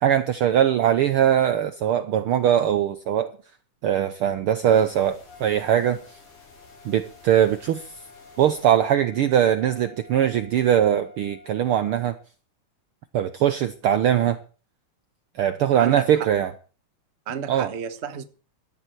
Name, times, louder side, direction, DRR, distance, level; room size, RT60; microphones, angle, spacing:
voice 1, 0.0-3.3 3.8-6.0 6.8-7.8 8.4-12.1 13.1-14.4 15.4-16.5 17.5-17.7, right 10 dB, 85° right, 1.2 m, -21 dB
sound 1, 4.7-8.7, left 2 dB, 80° left, 6.6 m, -53 dB
Trumpet, 5.2-11.8, left 4 dB, 50° left, 4.6 m, -50 dB
voice 2, 15.8-16.3 17.3-18.2, right 7 dB, 45° right, 0.8 m, -32 dB
17.5 x 13.0 x 4.6 m
omnidirectional pair, 3.5 m